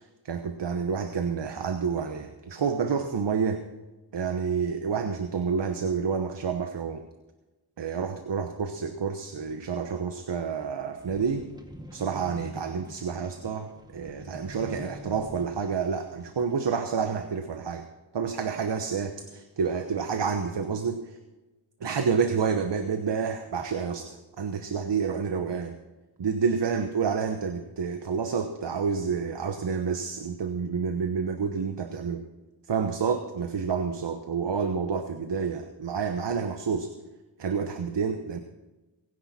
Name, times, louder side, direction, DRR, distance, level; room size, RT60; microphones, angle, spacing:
voice 1, 0.0-3.6 4.1-7.0 7.8-11.4 11.9-17.8 18.1-21.2 21.8-25.8 26.2-32.2 32.7-36.9 37.4-38.4, right 6 dB, 60° right, 7 dB, 1.1 m, -29 dB
sound 1, 11.0-15.9 16.5-16.6, left 1 dB, 10° right, 2.1 m, -45 dB
22.0 x 10.5 x 4.3 m, 1.1 s
cardioid pair, 55°, 47 cm